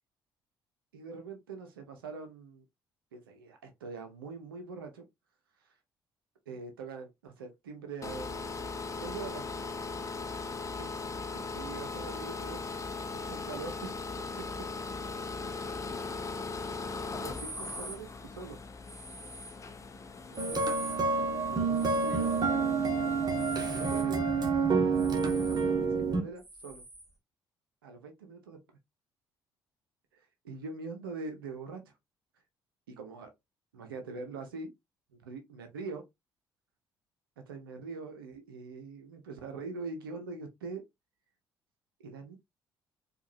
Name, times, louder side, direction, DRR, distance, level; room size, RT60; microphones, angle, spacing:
voice 1, 0.9-2.6 3.1-5.0 6.5-8.5 9.0-9.4 10.8-10.9 11.5-12.6 13.1-13.9 17.2-18.6 20.4-20.6 21.5-22.3 23.4-24.2 25.3-26.8 27.8-28.6 30.4-31.8 32.9-33.3 33.7-34.7 35.1-36.0 37.5-40.8 42.0-42.4, right 4 dB, 80° right, 0.7 m, -43 dB
sound 1, 8.0-24.0, left 4 dB, 25° left, 0.7 m, -39 dB
sound 2, 17.3-18.0 18.8-19.6 20.3-21.0 21.7-22.5 23.3-24.1 24.9-25.7 26.4-27.1, right 1 dB, ahead, 2.4 m, -45 dB
sound 3, 20.4-26.2, right 4 dB, 35° right, 1.2 m, -28 dB
4.6 x 2.5 x 2.6 m
figure-of-eight pair, 45°, 12 cm